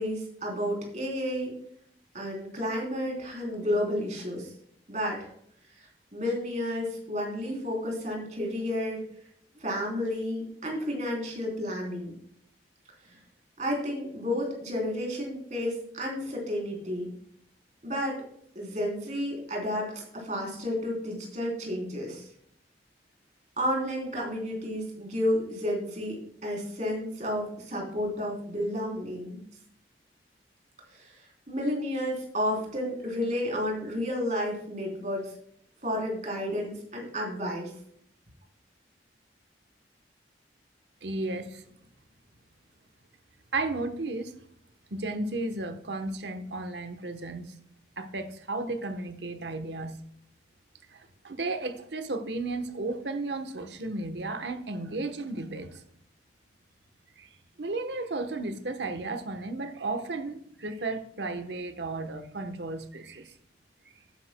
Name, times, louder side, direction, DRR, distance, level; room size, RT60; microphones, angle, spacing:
voice 1, 0.0-1.5 2.1-4.5 4.9-5.3 5.7-9.0 9.6-12.2 13.0-13.2 13.6-17.1 17.8-18.2 18.5-22.3 23.6-29.4 30.9-35.3 35.8-37.7, left 1 dB, 40° right, 3.5 m, -31 dB
voice 2, 41.0-41.6 43.5-44.3 44.9-47.5 48.0-49.9 51.2-55.7 57.2-57.3 57.6-63.3, right 2 dB, 75° right, 1.0 m, -34 dB
12.0 x 9.7 x 2.2 m
head